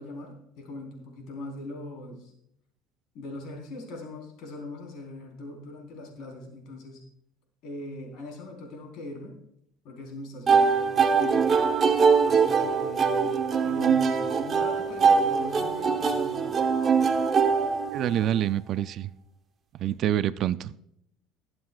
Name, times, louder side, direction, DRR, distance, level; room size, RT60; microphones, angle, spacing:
voice 1, 0.0-2.3 3.1-7.0 7.6-9.3 9.8-11.5 12.2-13.3 13.6-16.6 19.8-19.9, left 2 dB, 65° left, 1 dB, 4.1 m, -40 dB
sound 1, 10.5-18.4, right 5 dB, 30° right, 0.9 m, -23 dB
voice 2, 17.9-19.1 19.8-21.0, right 11 dB, 50° right, 15 dB, 0.4 m, -27 dB
21.5 x 7.7 x 2.4 m, 0.75 s
cardioid pair, 130°, 0 cm